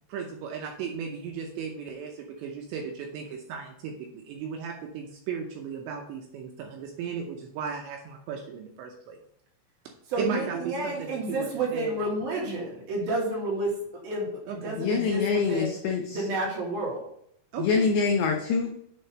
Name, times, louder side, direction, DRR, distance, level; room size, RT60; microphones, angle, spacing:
voice 1, 0.1-9.2 10.2-11.9 14.5-14.8 17.5-17.9, right 6 dB, 80° right, 1 dB, 2.7 m, -36 dB
voice 2, 10.1-15.7 16.1-17.0, right 2 dB, 60° right, -3 dB, 3.1 m, -30 dB
voice 3, 14.8-16.2 17.6-18.7, left 5 dB, 90° left, 3 dB, 2.3 m, -25 dB
8.5 x 3.7 x 5.4 m, 0.69 s
omnidirectional pair, 5.7 m